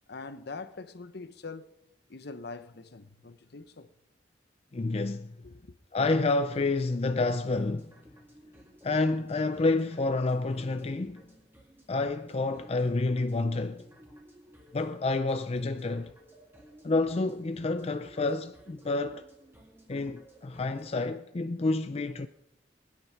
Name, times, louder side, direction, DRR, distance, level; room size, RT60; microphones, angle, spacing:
voice 1, 0.1-1.7 2.1-3.9 5.4-5.7, left 3 dB, 60° left, 0.8 m, -43 dB
voice 2, 4.7-5.4 5.9-7.9 8.8-11.2 11.9-13.9 14.7-16.1 16.8-19.2 19.9-22.3, left 3 dB, 35° left, 0.5 m, -29 dB
sound 1, 6.0-21.0, right 1 dB, 15° right, 2.5 m, -56 dB
20.0 x 9.8 x 5.8 m
head